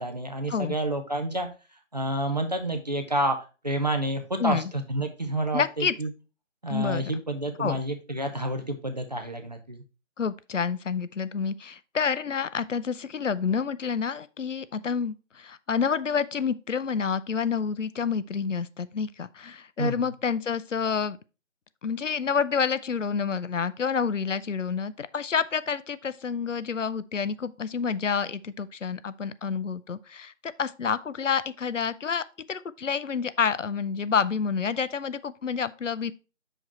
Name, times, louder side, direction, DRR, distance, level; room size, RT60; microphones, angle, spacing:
voice 1, 0.0-1.5 1.9-3.4 3.6-6.1 6.6-9.8 19.8-20.1, right 1 dB, 35° right, 0.7 m, -29 dB
voice 2, 4.4-4.7 5.5-5.9 6.7-7.1 7.6-7.8 10.2-21.2 21.8-36.1, left 6 dB, 70° left, 0.6 m, -28 dB
6.0 x 5.0 x 4.2 m
figure-of-eight pair, 160°, 39 cm